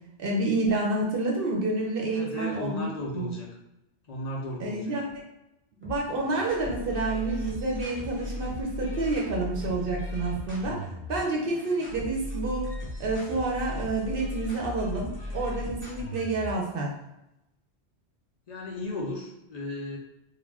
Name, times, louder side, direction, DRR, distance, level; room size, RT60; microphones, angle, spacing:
voice 1, 0.2-2.9 3.1-3.3 4.6-5.1 5.8-12.7 13.0-17.0, right 2 dB, 60° right, -2 dB, 0.7 m, -29 dB
voice 2, 2.1-3.5 4.1-5.0 18.5-20.0, left 2 dB, 60° left, -2 dB, 0.4 m, -35 dB
sound 1, 5.8-16.7, left 1 dB, 15° right, 0.4 m, -37 dB
2.4 x 2.1 x 3.3 m, 0.89 s
omnidirectional pair, 1.2 m